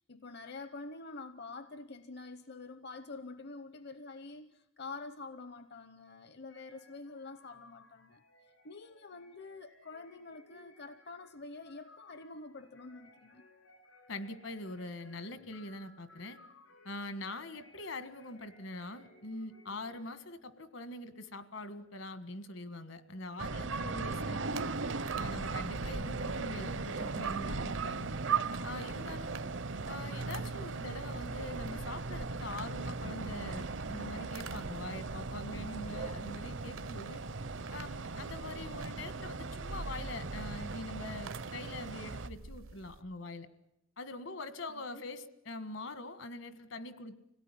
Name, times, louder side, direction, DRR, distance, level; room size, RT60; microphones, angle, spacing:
voice 1, 0.0-8.2 8.6-13.4 44.7-45.0, left 3 dB, 55° left, 12 dB, 0.8 m, -47 dB
sound 1, 6.5-20.1, left 1 dB, 90° left, 6.5 m, -61 dB
voice 2, 14.1-16.4 16.8-24.7 25.1-28.1 28.6-29.5 29.8-37.2 37.7-43.5 44.0-47.2, left 2 dB, 75° left, 12 dB, 1.7 m, -43 dB
sound 2, 23.4-42.3, right 4 dB, 65° right, 0.8 m, -38 dB
sound 3, 24.4-43.0, right 4 dB, 85° right, 1.1 m, -53 dB
26.0 x 17.5 x 9.9 m, 0.92 s
head